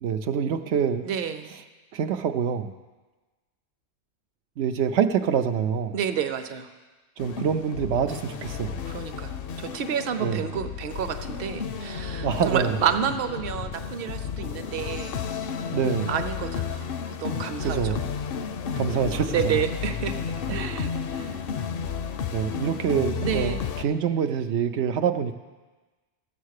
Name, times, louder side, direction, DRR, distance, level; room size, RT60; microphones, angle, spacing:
voice 1, 0.0-1.0 1.9-2.7 4.6-6.0 7.2-8.8 10.2-10.4 12.2-12.7 15.7-16.1 17.6-18.1 18.7-19.6 22.3-25.4, right 7 dB, 90° right, 7 dB, 0.9 m, -26 dB
voice 2, 1.0-1.5 5.9-6.7 8.8-15.2 16.1-18.1 19.2-20.1 20.5-21.4 22.5-22.8 23.2-23.6, right 8 dB, 60° right, 7 dB, 0.9 m, -30 dB
sound 1, 7.2-23.8, left 7 dB, 60° left, 0.7 m, -32 dB
14.0 x 7.2 x 6.5 m, 1.3 s
omnidirectional pair, 1.1 m